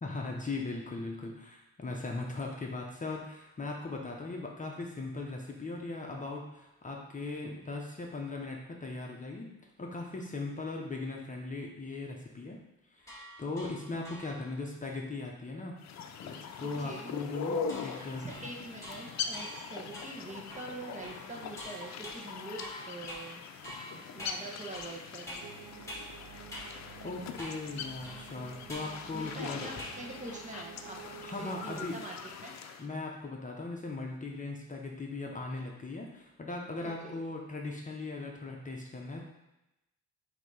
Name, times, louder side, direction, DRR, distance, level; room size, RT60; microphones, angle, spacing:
voice 1, 0.0-9.5 9.8-12.6 12.9-15.7 16.2-18.2 27.0-29.7 31.2-32.0 32.8-39.2, left 3 dB, 25° left, 0 dB, 0.9 m, -39 dB
sound 1, 13.0-14.6 17.7-26.2 26.5-26.7 27.4-27.7 28.0-30.0 30.3-30.6, equal, 10° left, 2.1 m, -47 dB
sound 2, 15.8-32.8, left 6 dB, 65° left, 0.6 m, -42 dB
voice 2, 16.8-17.1 17.8-23.4 23.9-25.6 29.1-31.0 31.4-32.1 32.4-32.5 36.8-37.2, right 2 dB, 25° right, -1 dB, 1.2 m, -44 dB
sound 3, 25.4-31.8, right 10 dB, 80° right, 0.5 m, -51 dB
5.9 x 2.9 x 5.5 m, 0.93 s
cardioid pair, 90°, 30 cm